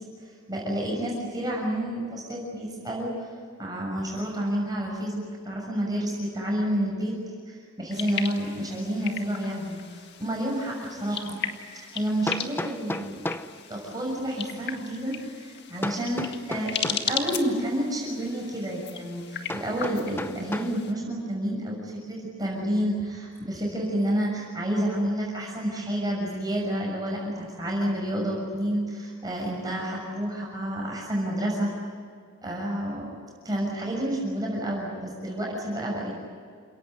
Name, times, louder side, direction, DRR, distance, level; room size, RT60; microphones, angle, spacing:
voice 1, 0.5-3.3 3.6-7.1 7.5-11.4 11.7-13.2 13.6-31.7 32.4-33.1 33.4-36.2, right 1 dB, 20° right, -3 dB, 6.5 m, -29 dB
sound 1, 7.9-20.9, left 7 dB, 55° left, 1.8 m, -37 dB
Hammer, 10.7-10.8 12.3-13.6 15.8-17.1 19.5-20.8, left 1 dB, 10° left, 0.9 m, -33 dB
29.0 x 18.0 x 10.0 m, 2.1 s
head